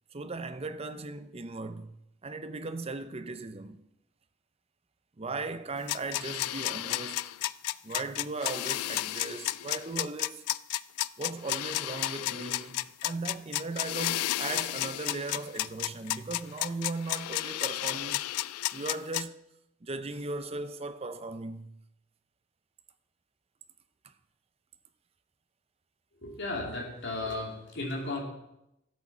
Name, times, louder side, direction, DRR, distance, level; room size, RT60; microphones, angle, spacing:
voice 1, 0.1-1.9 2.2-3.8 5.2-7.3 7.8-10.4 11.2-18.2 18.7-19.4 19.8-21.7, right 3 dB, 25° right, 0.5 m, -37 dB
sound 1, 5.9-19.2, left 15 dB, 90° left, 0.3 m, -32 dB
voice 2, 26.2-28.2, left 2 dB, 55° left, 2.7 m, -34 dB
13.0 x 8.5 x 4.2 m
head